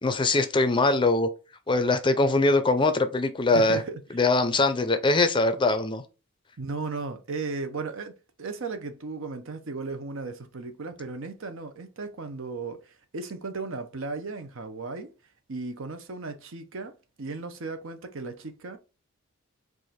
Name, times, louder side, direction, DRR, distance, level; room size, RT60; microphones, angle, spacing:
voice 1, 0.0-1.3 1.7-3.8 4.1-6.0, left 2 dB, 20° left, 0.5 m, -22 dB
voice 2, 3.5-4.0 6.6-15.1 15.5-18.8, right 3 dB, 65° right, 0.8 m, -36 dB
4.7 x 2.5 x 4.2 m
head